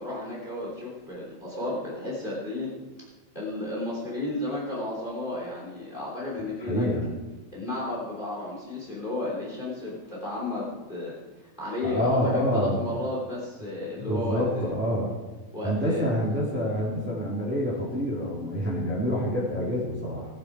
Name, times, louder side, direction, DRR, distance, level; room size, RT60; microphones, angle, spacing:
voice 1, 0.0-2.7 3.3-6.8 7.5-11.2 11.6-14.7 15.5-16.0, left 1 dB, 15° left, -4 dB, 3.2 m, -33 dB
voice 2, 6.7-7.0 11.8-12.8 14.0-15.1 15.6-20.3, equal, 5° right, -6 dB, 3.1 m, -27 dB
19.5 x 7.9 x 4.9 m, 1.2 s
omnidirectional pair, 3.4 m